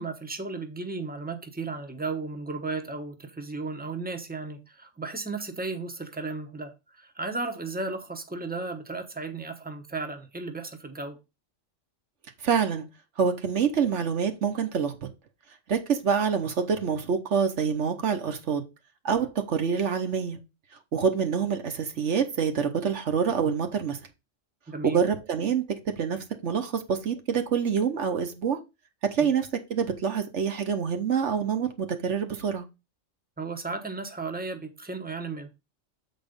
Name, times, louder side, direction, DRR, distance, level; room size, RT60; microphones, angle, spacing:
voice 1, 0.0-11.2 24.7-25.0 29.2-29.3 33.4-35.6, right 3 dB, 10° right, 0.9 m, -35 dB
voice 2, 12.4-12.9 13.2-15.0 15.7-18.6 19.0-20.4 20.9-24.0 24.8-28.6 29.0-32.7, right 6 dB, 65° right, 1.3 m, -26 dB
7.7 x 4.2 x 5.2 m
omnidirectional pair, 1.3 m